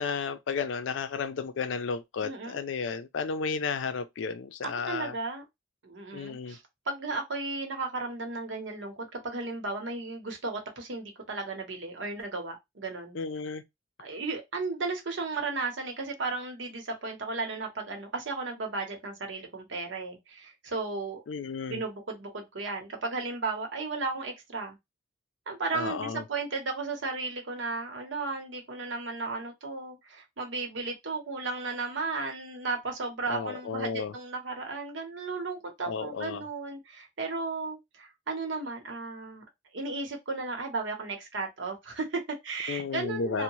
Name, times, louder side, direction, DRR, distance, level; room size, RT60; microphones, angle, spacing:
voice 1, 0.0-5.2 6.1-6.6 13.1-13.6 21.3-21.8 25.7-26.2 33.3-34.1 35.8-36.5 42.7-43.4, left 5 dB, 85° left, 0.4 m, -33 dB
voice 2, 2.2-2.6 4.9-5.4 5.8-13.2 14.0-21.2 21.7-24.8 25.5-39.4 39.7-43.4, right 3 dB, 80° right, 0.9 m, -35 dB
2.7 x 2.1 x 3.0 m
head